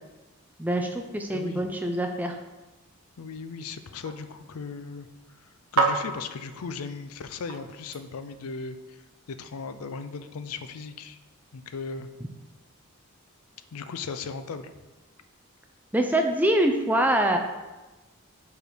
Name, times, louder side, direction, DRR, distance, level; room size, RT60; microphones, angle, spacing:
voice 1, 0.6-2.4 15.9-17.4, right 1 dB, 10° right, 3 dB, 0.4 m, -24 dB
voice 2, 1.3-1.7 3.2-5.1 5.4-9.0 9.3-11.2 11.5-12.1 13.7-14.7, left 4 dB, 85° left, 10 dB, 0.4 m, -37 dB
sound 1, 2.7-8.5, right 4 dB, 70° right, 0.7 m, -34 dB
5.0 x 4.6 x 4.9 m, 1.1 s
head